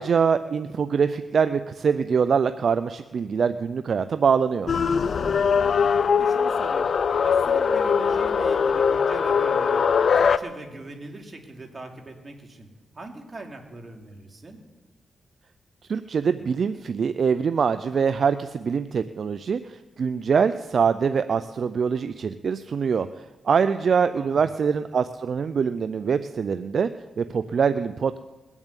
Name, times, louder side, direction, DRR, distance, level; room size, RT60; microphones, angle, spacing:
voice 1, 0.0-4.7 15.9-26.9 27.2-28.2, right 6 dB, 65° right, 11 dB, 0.5 m, -24 dB
sound 1, 4.7-10.4, left 6 dB, 65° left, 0.5 m, -21 dB
voice 2, 5.2-5.6 6.1-6.9 7.2-9.8 10.1-12.7 12.9-14.6 24.1-24.5, right 2 dB, 40° right, 2 dB, 2.9 m, -40 dB
21.0 x 7.2 x 8.3 m, 1.2 s
cardioid pair, 65°, 0 cm